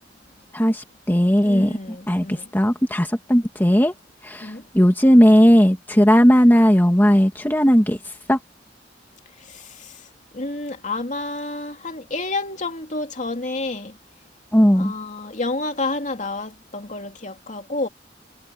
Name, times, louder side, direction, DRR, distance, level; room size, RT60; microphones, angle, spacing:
voice 1, 0.5-1.8 2.1-3.9 4.2-8.0 8.3-8.4 14.5-14.9, equal, 10° left, 1.7 m, -16 dB
voice 2, 1.4-2.5 4.4-4.6 9.5-10.0 10.3-14.0 14.8-17.9, left 2 dB, 40° left, 2.7 m, -29 dB
head